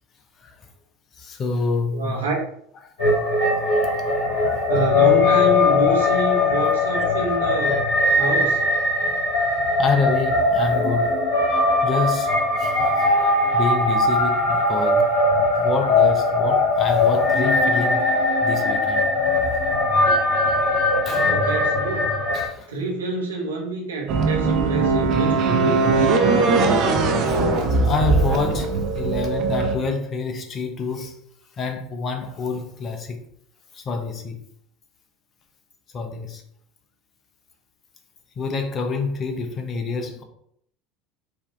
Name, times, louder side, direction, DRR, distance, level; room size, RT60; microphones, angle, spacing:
voice 1, 1.2-2.2 3.4-4.6 9.8-11.1 11.8-12.3 12.6-13.1 13.5-15.1 15.6-18.0 18.4-19.1 19.4-19.6 21.0-21.3 22.3-22.7 27.3-31.2 31.6-33.2 33.7-34.4 35.9-36.4 38.4-40.2, left 4 dB, 40° left, 0.9 m, -27 dB
voice 2, 1.9-2.3 4.7-7.9 8.2-8.6 21.0-22.2 22.7-26.3, right 3 dB, 85° right, 1.2 m, -27 dB
sound 1, 3.0-22.4, left 2 dB, 70° left, 1.8 m, -20 dB
sound 2, 24.1-29.8, right 3 dB, 55° right, 0.7 m, -20 dB
4.7 x 2.9 x 3.4 m
hypercardioid pair, 80°, 0 cm